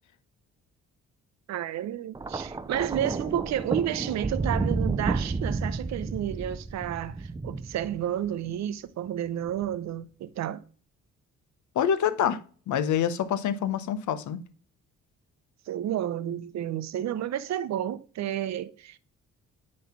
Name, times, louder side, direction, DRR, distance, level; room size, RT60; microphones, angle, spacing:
voice 1, 1.5-10.6 15.7-19.0, right 11 dB, 65° right, 0.7 m, -31 dB
Thunder, 2.1-8.5 9.5-9.7, right 3 dB, 15° right, 0.4 m, -31 dB
voice 2, 11.7-12.4 12.7-14.4, left 9 dB, 75° left, 1.0 m, -26 dB
9.4 x 3.2 x 5.7 m
cardioid pair, 90°, 30 cm